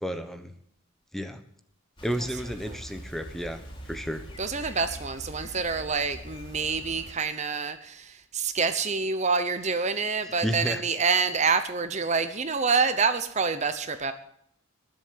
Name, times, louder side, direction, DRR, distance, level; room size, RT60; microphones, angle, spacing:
voice 1, 0.0-0.5 1.1-1.4 2.0-4.2 10.4-10.8, equal, ahead, 7 dB, 1.2 m, -32 dB
Bicycle, 2.0-7.1, equal, 25° left, 3.0 m, -43 dB
voice 2, 4.4-14.1, right 5 dB, 35° right, 10 dB, 0.9 m, -27 dB
21.0 x 7.8 x 8.6 m, 0.69 s
head